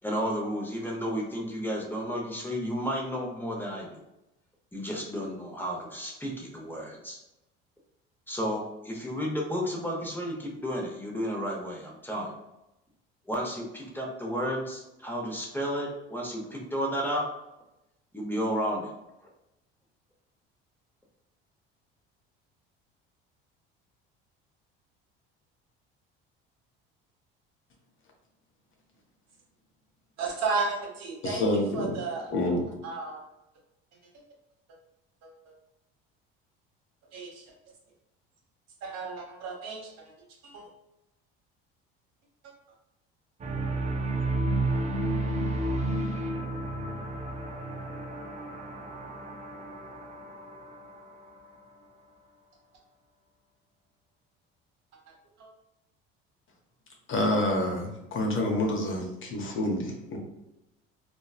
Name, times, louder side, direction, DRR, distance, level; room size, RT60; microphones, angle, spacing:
voice 1, 0.0-4.0 4.7-7.2 8.3-12.3 13.3-17.3 18.1-18.9, equal, 5° left, -1 dB, 0.7 m, -32 dB
voice 2, 30.2-32.3 32.8-33.2 35.2-35.5 37.1-37.4 38.8-40.1 40.4-40.7 55.4-55.5, right 4 dB, 60° right, -1 dB, 0.9 m, -34 dB
voice 3, 31.2-32.0 32.3-32.7 57.1-60.2, left 1 dB, 40° left, 0 dB, 0.8 m, -28 dB
sound 1, 43.4-51.6, right 2 dB, 25° right, 0.5 m, -32 dB
3.0 x 2.2 x 2.3 m, 0.92 s
hypercardioid pair, 75°, 30 cm